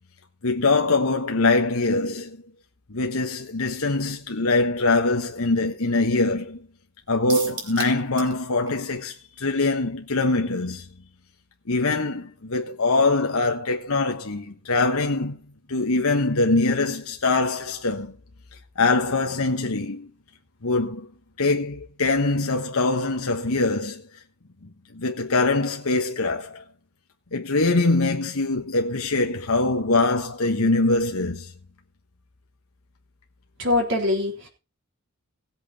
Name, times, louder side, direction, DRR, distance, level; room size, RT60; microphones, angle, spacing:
voice 1, 0.4-2.4 2.9-6.6 7.1-10.9 11.7-15.4 15.7-18.2 18.8-20.1 20.6-21.1 21.4-24.0 24.9-26.6 27.3-31.5, left 3 dB, 70° left, 1.3 m, -23 dB
sound 1, 7.3-8.4 8.7-8.8 9.1-9.2, right 3 dB, 20° right, 4.2 m, -34 dB
voice 2, 33.6-34.5, left 2 dB, 60° right, 3.8 m, -23 dB
17.5 x 8.2 x 4.2 m
head